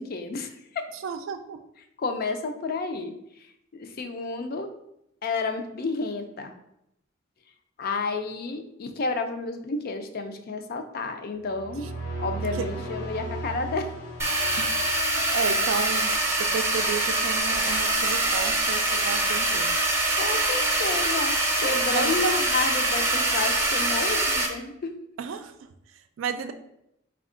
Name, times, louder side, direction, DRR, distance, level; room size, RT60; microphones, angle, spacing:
voice 1, 0.0-0.9 2.0-3.2 3.7-4.7 5.2-6.5 7.8-11.9 12.2-13.9 20.2-25.0, left 3 dB, 50° left, 7 dB, 0.4 m, -31 dB
voice 2, 0.9-1.6 11.8-11.9 12.4-12.7 14.6-19.7 21.9-22.4 25.2-26.5, right 6 dB, 85° right, 8 dB, 0.4 m, -33 dB
sound 1, 11.4-15.8, right 2 dB, 75° left, 1.0 m, -36 dB
sound 2, 14.2-24.5, right 2 dB, 15° right, 0.5 m, -24 dB
4.2 x 2.3 x 3.7 m, 0.80 s
head